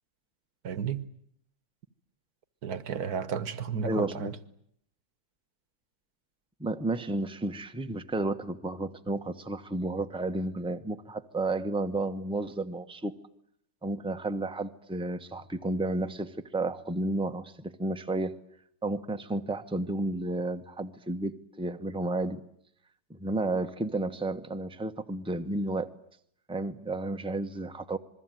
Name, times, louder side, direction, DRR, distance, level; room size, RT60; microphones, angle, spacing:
voice 1, 0.6-1.1 2.6-4.4, right 7 dB, 85° right, 1.8 m, -33 dB
voice 2, 3.8-4.3 6.6-13.1 13.8-18.4 18.8-22.4 23.1-25.9 26.5-28.0, right 2 dB, 5° right, 1.1 m, -32 dB
26.5 x 22.0 x 9.3 m
omnidirectional pair, 1.6 m